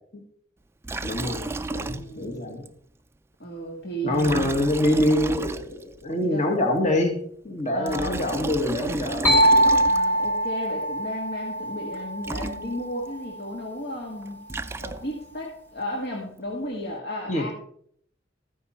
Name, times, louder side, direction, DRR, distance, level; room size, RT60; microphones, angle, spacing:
Liquid, 0.8-2.4 2.7-2.8 4.1-6.0 7.7-10.3 11.9-12.0 12.2-13.1 14.2-15.3, right 2 dB, 15° right, 0.4 m, -33 dB
voice 1, 1.0-2.7 4.0-9.5 17.3-17.5, left 1 dB, 40° left, 4 dB, 1.9 m, -25 dB
voice 2, 1.9-2.5 3.4-4.7 6.2-6.6 7.7-8.3 9.8-14.4 14.8-17.5, equal, 60° left, -1 dB, 2.0 m, -34 dB
sound 1, 9.2-12.9, right 1 dB, 10° left, 1.6 m, -22 dB
14.5 x 9.4 x 4.4 m, 0.64 s
head